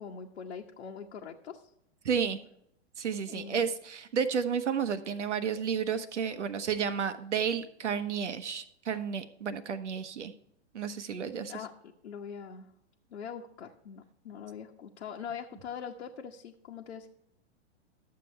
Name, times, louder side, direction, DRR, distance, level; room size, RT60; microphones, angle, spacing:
voice 1, 0.0-1.7 3.3-3.6 11.5-11.7 12.0-12.7 13.1-17.1, left 7 dB, 75° left, 0 dB, 1.1 m, -42 dB
voice 2, 2.0-2.4 3.0-10.3 10.7-11.5, right 7 dB, 80° right, 11 dB, 1.1 m, -32 dB
12.5 x 7.6 x 3.3 m, 0.74 s
hypercardioid pair, 120°, 35 cm